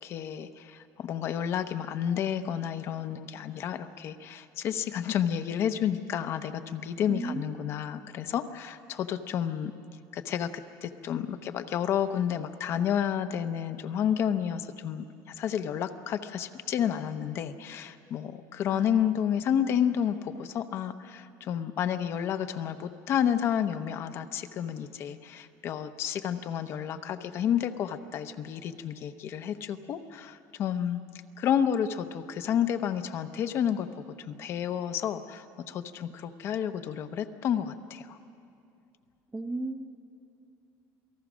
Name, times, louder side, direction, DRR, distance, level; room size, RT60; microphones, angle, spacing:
voice 1, 0.0-9.7 10.1-31.0 31.4-33.9 34.2-38.2, left 9 dB, 40° left, 9 dB, 0.8 m, -30 dB
voice 2, 7.1-8.0 18.7-19.1 39.3-39.9, right 2 dB, 10° right, 6 dB, 0.7 m, -36 dB
27.5 x 18.5 x 6.2 m, 2.6 s
cardioid pair, 165°, 6 cm